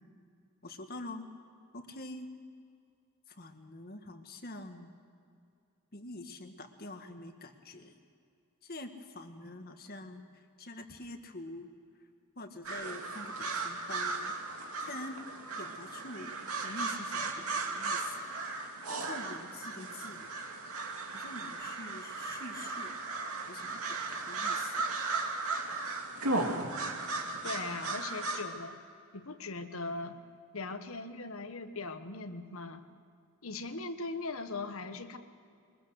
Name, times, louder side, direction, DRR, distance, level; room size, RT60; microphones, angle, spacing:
voice 1, 0.6-1.3 1.7-2.3 3.3-4.9 5.9-7.9 8.6-11.7 12.4-14.3 14.8-15.2 15.6-16.3 16.6-18.3 18.9-20.3 21.1-22.9 23.5-24.8, left 2 dB, 45° left, 6 dB, 1.7 m, -45 dB
sound 1, 12.6-28.4, right 3 dB, 80° right, 2.5 m, -36 dB
voice 2, 27.4-28.8 29.1-30.2 30.5-32.9 33.4-35.2, left 3 dB, 70° left, 9 dB, 1.4 m, -39 dB
23.0 x 21.5 x 6.6 m, 2.4 s
head